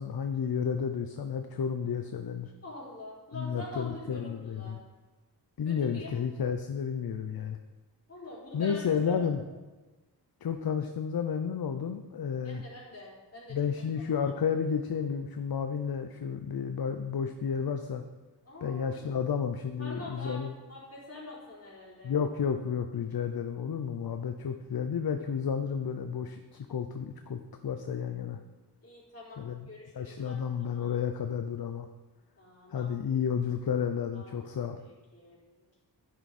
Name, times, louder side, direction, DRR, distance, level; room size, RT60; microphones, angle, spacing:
voice 1, 0.0-2.5 3.3-4.8 5.6-7.6 8.5-9.4 10.4-12.6 13.5-18.0 18.6-20.5 22.0-28.4 29.4-29.7 29.9-31.9 32.7-34.8, left 7 dB, 60° left, 7 dB, 0.7 m, -32 dB
voice 2, 2.6-4.7 5.6-6.1 8.1-9.2 12.4-13.8 14.1-14.3 18.4-18.9 19.8-22.1 28.8-29.4 29.7-31.0 32.4-32.9 34.1-34.6 35.1-35.4, left 2 dB, 35° left, -6 dB, 4.8 m, -45 dB
12.5 x 11.0 x 4.3 m, 1.2 s
wide cardioid pair, 125°, 41 cm